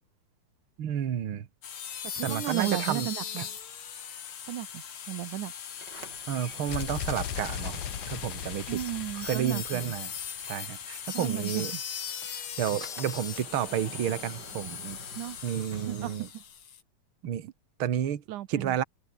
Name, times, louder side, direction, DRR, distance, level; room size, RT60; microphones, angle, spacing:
voice 1, 0.8-1.5 2.2-3.1 3.4-3.5 6.3-7.8 8.1-8.8 9.1-10.1 10.4-11.7 12.2-15.0 15.4-16.3 17.2-17.5 17.8-18.2 18.5-18.8, right 9 dB, 50° right, 2.2 m, -31 dB
sound 1, 1.6-16.8, left 8 dB, 50° left, 2.4 m, -39 dB
voice 2, 2.2-3.5 4.5-5.5 8.7-9.9 11.1-11.8 15.2-15.4 15.9-16.1 18.3-18.8, right 14 dB, 85° right, 2.5 m, -34 dB
Sliding door, 5.7-10.0 10.2-16.6, right 2 dB, 30° right, 8.8 m, -50 dB
sound 2, 6.7-10.5, left 10 dB, 85° left, 3.4 m, -38 dB
omnidirectional pair, 3.5 m